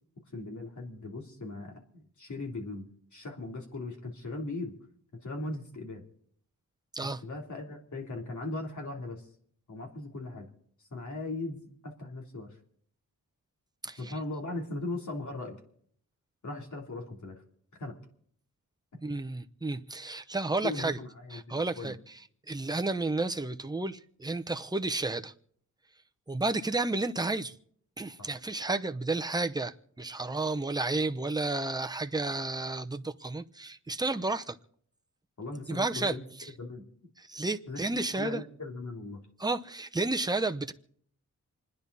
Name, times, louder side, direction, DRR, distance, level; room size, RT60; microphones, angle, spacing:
voice 1, 0.3-4.7 5.2-6.0 7.2-9.2 9.7-10.5 10.9-12.6 14.0-15.6 16.4-17.4 17.8-18.0 20.6-21.9 28.2-28.3 35.4-36.2 36.6-36.9 37.7-39.2, left 2 dB, 60° left, 3.3 m, -38 dB
voice 2, 13.8-14.1 19.0-21.0 21.3-22.0 22.5-25.3 26.3-27.6 28.0-34.6 35.7-36.5 37.2-38.4 39.4-40.7, right 2 dB, 10° right, 0.8 m, -32 dB
28.0 x 10.0 x 4.1 m
wide cardioid pair, 115°, 33 cm